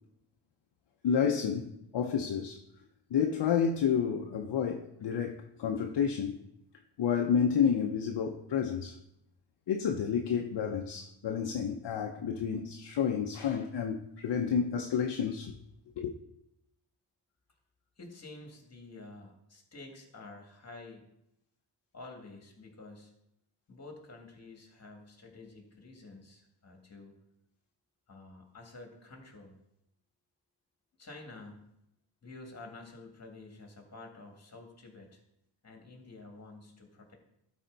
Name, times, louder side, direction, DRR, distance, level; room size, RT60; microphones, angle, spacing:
voice 1, 1.0-2.6 3.1-6.4 7.0-9.0 9.7-15.5 16.0-16.1, left 7 dB, 60° left, 0.8 m, -30 dB
voice 2, 18.0-21.1 21.9-23.1 23.7-27.2 28.1-29.6 31.0-31.7 32.2-35.2 35.6-37.2, left 2 dB, 35° left, 2.3 m, -50 dB
12.5 x 4.4 x 4.0 m
cardioid pair, 90°, 47 cm